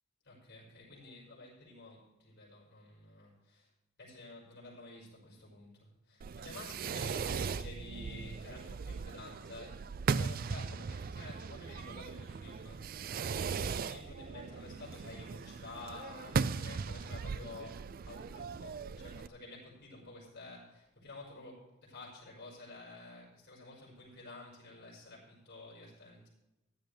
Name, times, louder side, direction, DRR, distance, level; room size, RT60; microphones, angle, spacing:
voice 1, 0.2-3.7 4.0-9.8 10.1-26.3, left 2 dB, 55° left, -5 dB, 5.3 m, -51 dB
Fireworks, 6.2-19.3, right 5 dB, 45° right, 0.3 m, -38 dB
16.0 x 11.0 x 3.4 m, 0.95 s
head